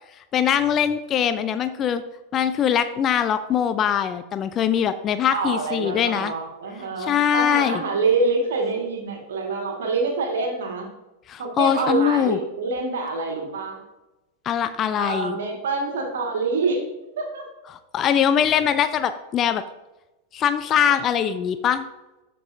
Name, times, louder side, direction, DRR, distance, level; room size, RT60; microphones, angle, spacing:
voice 1, 0.3-2.0 2.3-6.3 7.0-7.8 11.3-12.4 14.5-15.4 17.7-19.6 20.3-21.9, left 9 dB, 30° left, 11 dB, 0.4 m, -22 dB
voice 2, 5.3-10.9 11.4-13.8 15.0-16.8 17.2-17.5 20.9-21.0, right 3 dB, 60° right, 2 dB, 1.8 m, -26 dB
13.0 x 5.3 x 2.7 m, 1.0 s
figure-of-eight pair, 90°, 0 cm